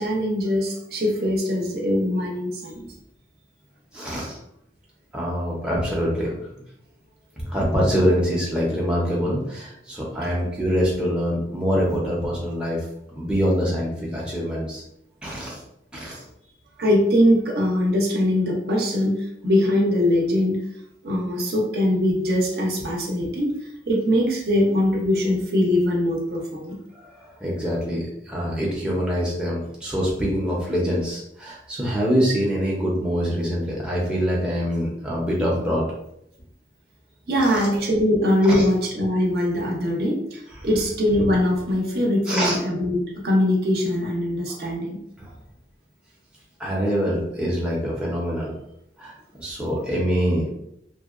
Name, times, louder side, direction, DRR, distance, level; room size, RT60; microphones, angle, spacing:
voice 1, 0.0-2.8 16.8-19.2 19.4-20.6 21.0-23.6 23.9-26.8 37.3-45.0, left 1 dB, 60° right, -1 dB, 0.5 m, -22 dB
voice 2, 3.9-4.4 5.1-6.3 7.4-12.8 13.1-14.8 15.2-15.6 15.9-16.2 26.9-35.8 37.4-37.7 38.4-38.6 42.3-42.6 45.2-45.3 46.6-48.5 49.0-50.5, equal, 5° right, -5 dB, 0.5 m, -24 dB
2.6 x 2.1 x 2.4 m, 0.78 s
head